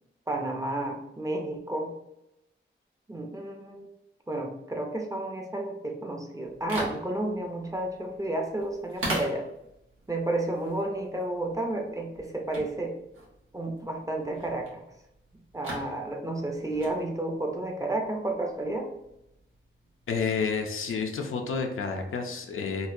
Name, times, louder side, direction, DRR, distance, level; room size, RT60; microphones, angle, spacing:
voice 1, 0.3-1.9 3.1-3.9 4.3-9.4 10.1-12.9 13.5-14.8 15.5-18.9, right 1 dB, 15° right, 1 dB, 0.5 m, -31 dB
sound 1, 6.4-20.6, right 1 dB, 85° right, 1.1 m, -42 dB
voice 2, 20.1-22.9, left 5 dB, 75° left, 4 dB, 0.5 m, -30 dB
3.9 x 2.2 x 2.6 m, 0.86 s
wide cardioid pair, 110°, 21 cm